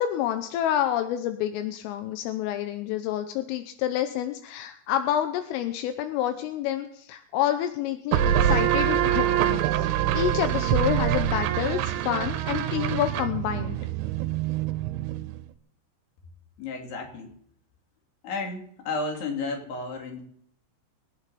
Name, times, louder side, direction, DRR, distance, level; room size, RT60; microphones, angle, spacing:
voice 1, 0.0-9.9 10.1-13.8, left 11 dB, 85° left, 7 dB, 3.5 m, -28 dB
sound 1, 8.1-15.5, right 11 dB, 80° right, 3.0 m, -25 dB
voice 2, 16.6-17.3 18.2-20.2, left 3 dB, 55° left, 2 dB, 4.6 m, -32 dB
23.5 x 9.8 x 4.2 m, 0.67 s
omnidirectional pair, 5.7 m